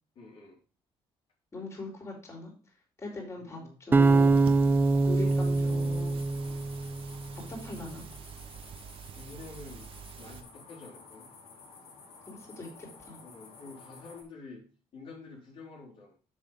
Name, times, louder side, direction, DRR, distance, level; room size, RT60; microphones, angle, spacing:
voice 1, 0.1-0.6 3.4-3.7 6.5-6.7 8.9-9.9 10.2-11.3 13.2-14.7 14.9-16.1, left 3 dB, 60° left, -3 dB, 3.1 m, -48 dB
voice 2, 1.5-2.5 3.0-4.4 5.1-6.1 7.5-8.1 12.3-13.2, left 2 dB, 25° left, 0 dB, 3.7 m, -40 dB
sound 1, 3.9-7.1, right 3 dB, 20° right, 0.6 m, -24 dB
sound 2, 4.0-10.4, right 7 dB, 65° right, 1.1 m, -46 dB
sound 3, 5.2-14.2, left 4 dB, 80° left, 2.8 m, -53 dB
7.4 x 6.5 x 5.0 m, 0.36 s
cardioid pair, 125°, 10 cm